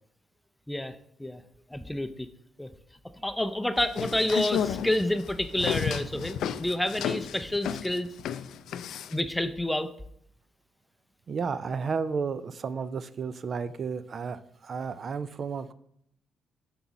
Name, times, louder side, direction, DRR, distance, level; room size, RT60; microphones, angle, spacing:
voice 1, 0.7-1.4 1.7-2.3 2.6-2.7 3.2-8.1 9.1-9.9, left 1 dB, 10° left, 10 dB, 0.5 m, -29 dB
sound 1, 3.8-9.2, left 8 dB, 75° left, 0.4 m, -32 dB
voice 2, 11.3-15.7, right 5 dB, 50° right, 14 dB, 0.4 m, -32 dB
6.9 x 6.1 x 4.1 m, 0.71 s
supercardioid pair, 65°, 0 cm